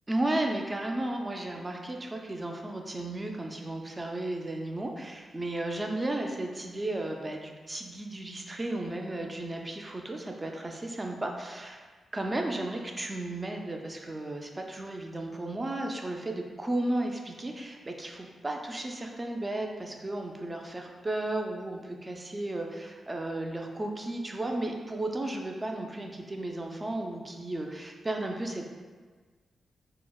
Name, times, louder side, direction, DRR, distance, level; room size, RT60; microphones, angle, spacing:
voice 1, 0.1-11.8 12.1-28.7, right 1 dB, 25° right, 2 dB, 0.4 m, -34 dB
3.8 x 2.0 x 2.2 m, 1.4 s
cardioid pair, 65°, 0 cm